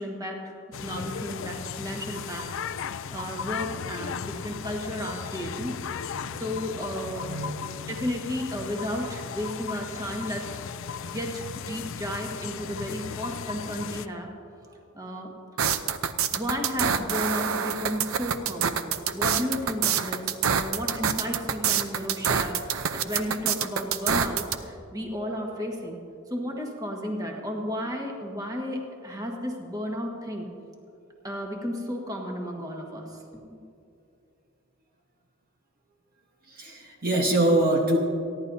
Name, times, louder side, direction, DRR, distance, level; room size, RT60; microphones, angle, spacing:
voice 1, 0.0-5.7 6.4-7.4 7.9-14.3 14.9-15.3 16.3-18.8 19.1-26.0 26.3-30.5 31.2-33.2 33.5-33.6, equal, 20° right, 0 dB, 1.5 m, -33 dB
sound 1, 0.7-14.1, left 7 dB, 65° left, 0.4 m, -36 dB
voice 2, 7.2-8.1 14.7-14.8 36.5-38.0, right 1 dB, 45° right, 1 dB, 1.2 m, -25 dB
sound 2, 15.6-24.6, right 7 dB, 85° right, 0.6 m, -26 dB
28.5 x 11.0 x 2.7 m, 2.7 s
head